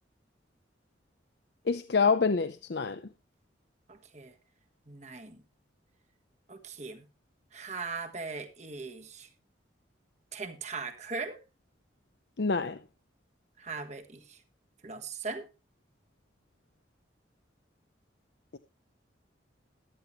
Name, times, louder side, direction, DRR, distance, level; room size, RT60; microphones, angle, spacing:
voice 1, 1.7-3.0 12.4-12.8 18.5-18.6, left 5 dB, 60° left, 0.6 m, -26 dB
voice 2, 3.9-4.3 4.9-5.4 6.5-7.0 7.5-9.3 10.3-11.4 13.6-14.4 14.8-15.5, right 4 dB, 35° right, 1.5 m, -39 dB
14.0 x 11.5 x 3.1 m
head